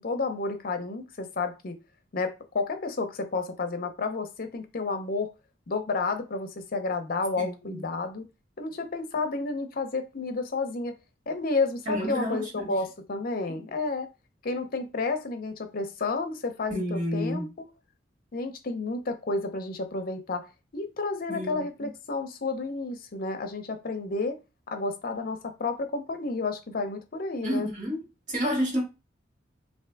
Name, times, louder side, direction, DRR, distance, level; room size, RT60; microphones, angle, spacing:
voice 1, 0.0-1.8 2.1-5.3 5.7-8.2 8.6-11.0 11.3-14.1 14.4-17.5 18.3-20.5 20.7-24.4 24.7-27.7, left 3 dB, 50° left, 0.6 m, -31 dB
voice 2, 7.4-7.8 11.9-12.7 13.5-13.6 16.7-17.5 21.3-21.9 27.4-28.0 28.3-28.8, equal, 45° right, 1.6 m, -30 dB
3.4 x 2.7 x 3.4 m
head